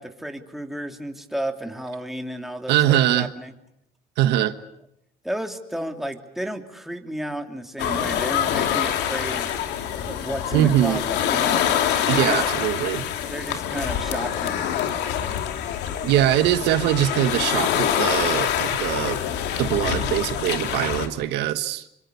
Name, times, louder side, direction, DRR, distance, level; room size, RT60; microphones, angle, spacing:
voice 1, 0.0-3.5 5.2-9.5 10.0-11.6 12.1-12.4 13.3-14.6, right 1 dB, ahead, 4 dB, 3.0 m, -32 dB
voice 2, 2.7-3.3 4.2-4.5 10.5-11.0 12.1-13.0 16.0-19.2 19.6-21.8, right 13 dB, 90° right, 10 dB, 1.4 m, -22 dB
sound 1, 7.8-21.1, left 9 dB, 85° left, 2.7 m, -25 dB
26.5 x 25.5 x 7.0 m, 0.80 s
cardioid pair, 110°, 17 cm